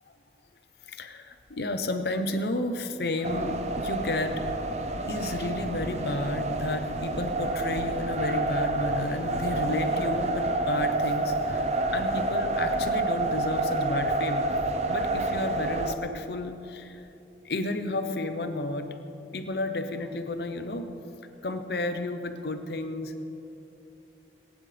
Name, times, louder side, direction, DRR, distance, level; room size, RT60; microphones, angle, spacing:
voice 1, 0.9-4.3 5.1-11.6 11.9-14.4 14.9-17.0 17.4-18.9 19.3-20.9 21.4-23.2, left 2 dB, 65° left, 8 dB, 0.8 m, -32 dB
sound 1, 3.2-15.9, right 2 dB, 40° right, 0.5 m, -28 dB
19.0 x 10.5 x 3.4 m, 2.9 s
head